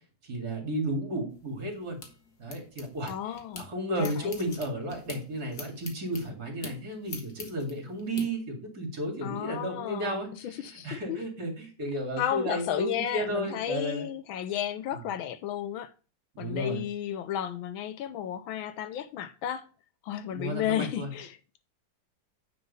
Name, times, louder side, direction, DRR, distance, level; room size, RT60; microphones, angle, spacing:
voice 1, 0.2-2.0 2.4-3.1 3.5-14.1 14.9-15.1 16.3-16.8 20.3-21.1, right 1 dB, 45° right, 2.9 m, -33 dB
sound 1, 1.3-3.7 4.0-8.3, left 4 dB, 50° left, 1.9 m, -45 dB
voice 2, 3.1-3.7 4.0-4.3 9.2-11.2 12.2-15.9 16.4-19.7 20.0-21.4, left 10 dB, 75° left, 1.4 m, -33 dB
9.6 x 4.3 x 5.4 m
omnidirectional pair, 2.3 m